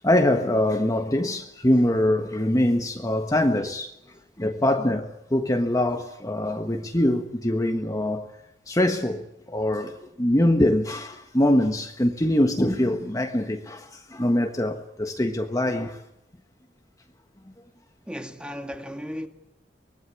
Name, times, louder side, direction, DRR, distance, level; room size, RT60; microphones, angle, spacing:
voice 1, 0.0-3.9 4.4-8.3 8.7-16.0, left 1 dB, 20° left, 1.4 m, -23 dB
voice 2, 18.1-19.3, equal, 5° right, 2.2 m, -35 dB
24.5 x 21.0 x 8.6 m
head